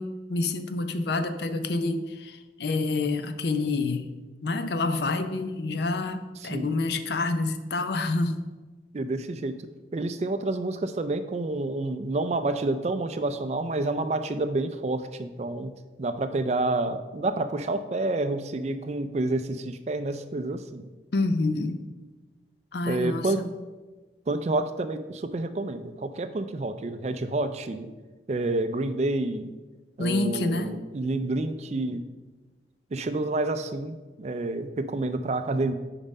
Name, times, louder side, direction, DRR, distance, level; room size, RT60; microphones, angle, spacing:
voice 1, 0.0-4.1 4.4-8.4 21.1-21.8 22.7-23.5 30.0-30.8, left 3 dB, 60° left, 9 dB, 0.5 m, -28 dB
voice 2, 6.4-6.7 8.9-15.7 16.0-20.9 22.9-23.4 24.3-27.9 28.3-29.5 30.0-32.0 32.9-35.7, right 2 dB, 35° right, 10 dB, 0.4 m, -29 dB
5.4 x 4.9 x 5.3 m, 1.2 s
head